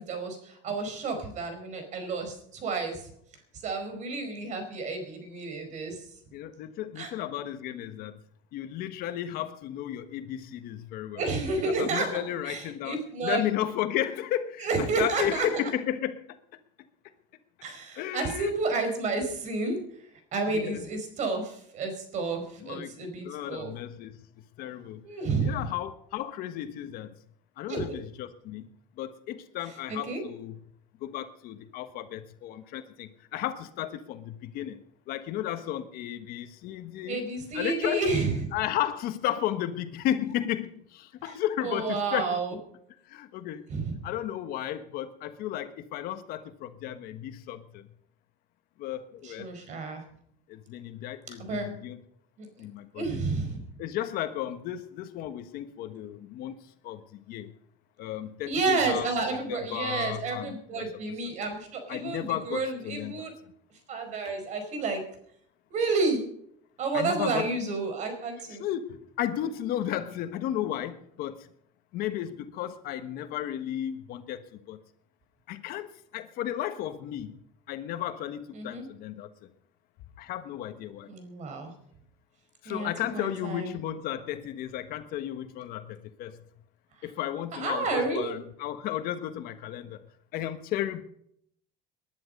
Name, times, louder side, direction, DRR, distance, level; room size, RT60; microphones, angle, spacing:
voice 1, 0.0-3.0 3.6-6.0 6.9-7.1 11.1-12.1 12.4-13.4 14.6-15.6 17.6-19.8 20.3-23.7 25.0-25.6 27.7-28.0 29.9-30.2 37.1-38.5 41.2-41.4 41.6-42.6 43.7-44.0 49.2-50.0 51.4-51.7 52.4-52.5 52.9-53.6 58.5-63.3 63.9-65.0 65.7-66.2 66.8-68.6 78.5-78.8 81.1-81.7 82.6-83.7 87.5-88.3, right 3 dB, 45° right, 6 dB, 4.9 m, -30 dB
voice 2, 6.3-8.2 8.5-11.2 11.8-16.4 18.0-18.5 20.5-20.9 22.6-23.0 23.2-24.2 24.6-25.0 25.4-27.1 27.6-28.7 29.0-30.6 31.0-37.2 37.5-38.1 38.5-42.4 43.1-43.6 44.0-47.9 48.8-49.5 50.5-52.0 52.6-53.2 53.8-56.6 56.8-57.5 58.0-59.1 59.5-60.9 61.9-63.3 66.9-67.5 68.5-71.5 71.9-74.8 75.5-77.4 77.7-79.3 80.2-81.1 82.6-86.4 87.0-90.0 90.3-91.0, left 12 dB, 60° left, 10 dB, 1.3 m, -34 dB
20.5 x 10.5 x 5.4 m, 0.69 s
cardioid pair, 140°, 17 cm